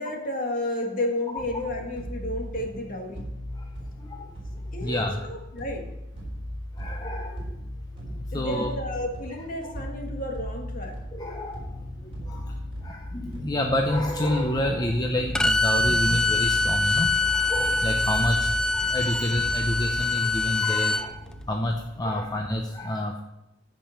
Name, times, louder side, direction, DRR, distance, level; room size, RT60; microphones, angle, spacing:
voice 1, 0.0-3.2 4.7-5.9 6.1-6.2 8.3-11.0 22.2-22.3, left 1 dB, 45° left, 2 dB, 1.9 m, -32 dB
sound 1, 1.4-20.4, left 1 dB, 30° right, 4.1 m, -37 dB
voice 2, 4.0-4.3 4.8-5.2 6.8-7.6 8.1-8.7 9.6-9.7 11.1-23.2, left 1 dB, 20° left, 2 dB, 0.7 m, -29 dB
sound 2, 11.6-22.5, left 1 dB, 80° left, 1.7 m, -45 dB
Bowed string instrument, 15.3-21.1, left 2 dB, 5° left, 0.3 m, -24 dB
14.0 x 5.4 x 5.9 m, 0.90 s
head